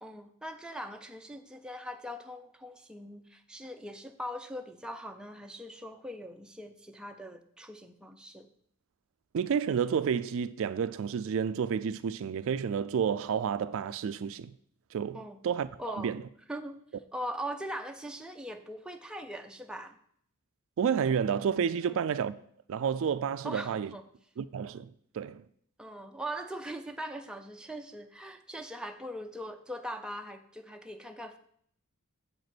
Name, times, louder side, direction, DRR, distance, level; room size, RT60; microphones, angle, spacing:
voice 1, 0.0-8.5 15.1-15.4 15.8-16.2 16.5-16.8 17.1-20.0 21.8-22.0 23.4-24.1 25.8-31.4, equal, 5° right, 0.6 m, -41 dB
voice 2, 9.3-14.5 14.9-16.2 20.8-22.4 22.7-23.9 24.4-25.4, right 7 dB, 65° right, 0.3 m, -30 dB
7.5 x 5.1 x 6.0 m
head